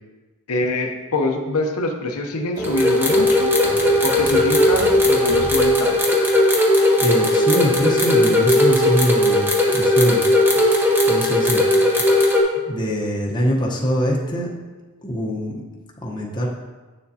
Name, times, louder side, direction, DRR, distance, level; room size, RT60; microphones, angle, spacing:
voice 1, 0.5-3.5 4.0-6.0 11.7-11.8, left 2 dB, 85° left, 2 dB, 0.8 m, -24 dB
sound 1, 2.6-12.4, left 1 dB, 10° right, 0.9 m, -17 dB
sound 2, 2.6-6.3, right 1 dB, 60° right, 2.2 m, -35 dB
voice 2, 6.7-10.2 10.7-11.6 12.7-14.5 15.0-15.6 16.0-16.5, equal, 20° left, -3 dB, 0.9 m, -23 dB
8.3 x 7.0 x 2.8 m, 1.3 s
head